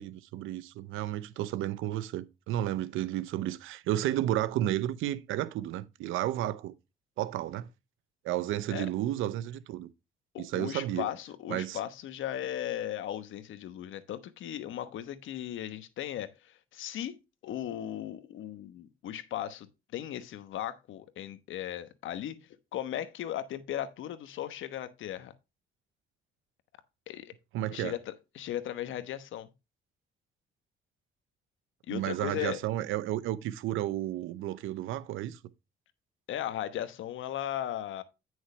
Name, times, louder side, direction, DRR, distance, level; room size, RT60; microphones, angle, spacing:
voice 1, 0.0-6.7 7.2-7.7 8.2-9.9 10.4-11.1 11.5-11.8 27.5-28.0 31.9-35.4, right 13 dB, 90° right, 0.7 m, -32 dB
voice 2, 10.3-19.7 19.9-22.4 22.7-25.3 27.1-27.3 27.7-29.5 31.9-32.6 36.3-38.0, left 11 dB, 80° left, 1.1 m, -37 dB
9.6 x 6.3 x 3.3 m
cardioid pair, 90°, 20 cm